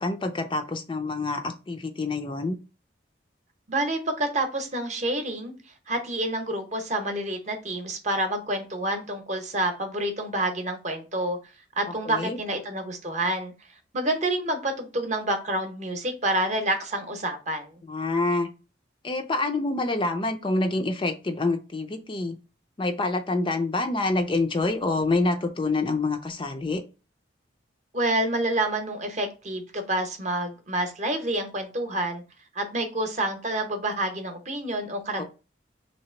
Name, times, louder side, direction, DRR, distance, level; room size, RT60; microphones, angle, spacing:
voice 1, 0.0-2.6 12.1-12.4 17.9-18.5 19.0-22.4 22.8-26.8 35.2-35.3, left 2 dB, 25° left, 0.4 m, -27 dB
voice 2, 3.7-5.5 5.9-11.4 11.8-13.5 13.9-17.8 27.9-32.2 32.5-35.2, right 1 dB, 40° right, 0.8 m, -28 dB
3.2 x 2.9 x 4.3 m
head